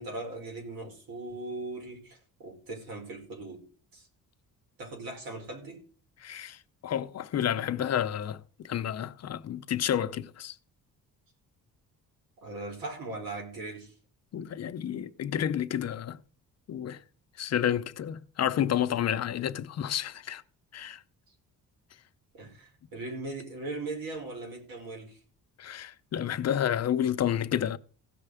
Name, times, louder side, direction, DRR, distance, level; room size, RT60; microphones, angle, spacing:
voice 1, 0.0-3.6 3.9-4.1 4.8-5.8 12.4-13.9 22.3-25.2, right 2 dB, 85° right, 4.8 m, -39 dB
voice 2, 6.2-6.6 6.8-10.6 14.3-16.2 16.7-17.0 17.4-20.4 20.7-21.0 25.6-27.8, left 10 dB, 50° left, 0.7 m, -30 dB
16.5 x 6.6 x 4.9 m
cardioid pair, 145°, 34 cm